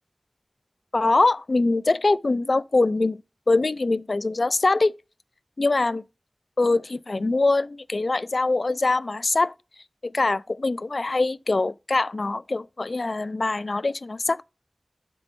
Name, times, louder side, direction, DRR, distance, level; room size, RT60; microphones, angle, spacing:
voice 1, 0.9-3.2 3.5-4.9 5.6-6.0 6.6-9.5 10.0-14.4, left 3 dB, 85° left, 0.3 m, -23 dB
7.8 x 6.1 x 4.2 m
wide cardioid pair, 40°, 0 cm